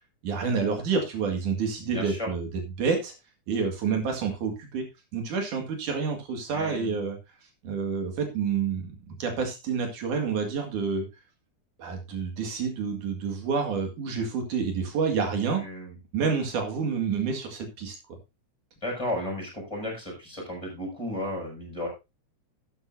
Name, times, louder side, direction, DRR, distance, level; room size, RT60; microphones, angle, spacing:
voice 1, 0.2-2.5 2.8-3.1 3.5-4.8 5.1-7.2 7.6-11.1 11.8-15.6 16.1-18.0, right 5 dB, 85° right, 3 dB, 3.6 m, -28 dB
voice 2, 1.8-2.3 6.5-7.0 15.6-16.0 18.8-21.9, left 1 dB, 10° left, -1 dB, 6.7 m, -34 dB
12.5 x 9.5 x 2.7 m, 0.25 s
omnidirectional pair, 3.5 m